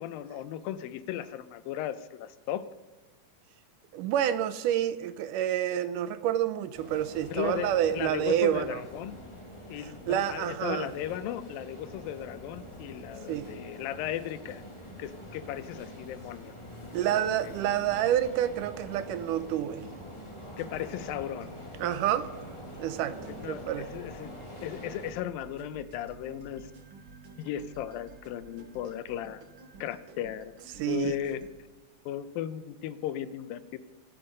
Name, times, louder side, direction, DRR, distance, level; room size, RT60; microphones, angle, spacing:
voice 1, 0.0-2.7 7.3-9.2 9.7-14.6 15.0-16.5 17.0-17.5 20.6-21.5 23.4-24.3 24.6-26.7 27.4-29.4 29.8-30.5 30.9-31.4 32.1-33.8, left 11 dB, 90° left, 2.5 m, -36 dB
voice 2, 3.9-8.8 9.8-10.9 13.3-13.5 16.9-19.9 21.8-22.3 22.8-23.2 23.4-23.9 30.8-31.2, right 11 dB, 80° right, 2.0 m, -28 dB
sound 1, 6.7-25.1, left 1 dB, 10° left, 1.7 m, -45 dB
sound 2, 20.5-31.5, right 4 dB, 50° right, 1.7 m, -51 dB
24.5 x 8.9 x 5.3 m
omnidirectional pair, 4.0 m